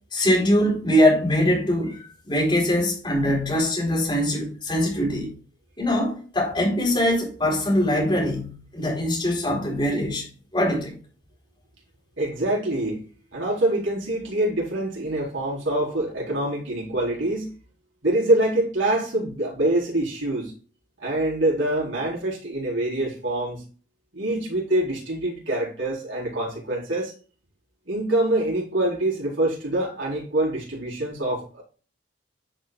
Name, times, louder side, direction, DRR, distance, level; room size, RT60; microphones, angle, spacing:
voice 1, 0.1-5.3 5.8-11.0, left 1 dB, 25° left, 4.0 m, -22 dB
voice 2, 12.2-13.0 13.3-17.5 18.0-20.5 21.0-23.6 24.1-27.1 27.9-31.6, right 1 dB, 90° right, 4.3 m, -25 dB
11.0 x 5.7 x 2.4 m
head